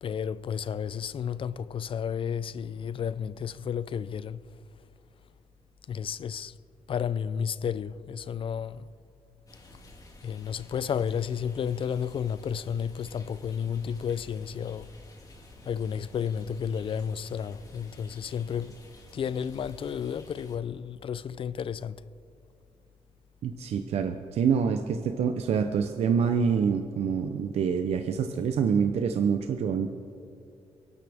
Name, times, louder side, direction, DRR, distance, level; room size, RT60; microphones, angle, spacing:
voice 1, 0.0-4.4 5.9-6.5 6.9-8.9 10.2-14.9 15.6-18.8 19.1-22.0, left 7 dB, 55° left, 0.4 m, -32 dB
sound 1, 9.5-20.6, left 1 dB, 35° left, 2.3 m, -51 dB
voice 2, 23.4-29.9, right 6 dB, 75° right, 0.7 m, -26 dB
23.5 x 11.0 x 3.5 m
cardioid pair, 80°, 11 cm